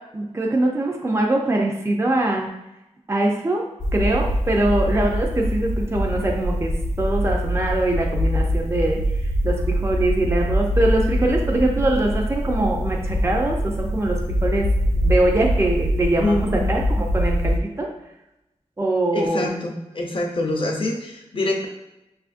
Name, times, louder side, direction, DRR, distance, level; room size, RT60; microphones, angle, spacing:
voice 1, 0.1-2.5 3.1-3.7 3.9-9.0 9.4-17.9 18.8-19.6, right 2 dB, 25° right, 0 dB, 0.5 m, -23 dB
sound 1, 3.8-17.6, equal, 90° left, 0.5 m, -23 dB
voice 2, 16.2-16.7 19.1-21.7, left 2 dB, 45° left, 1 dB, 0.7 m, -25 dB
5.3 x 2.4 x 2.5 m, 0.91 s
wide cardioid pair, 80°, 12 cm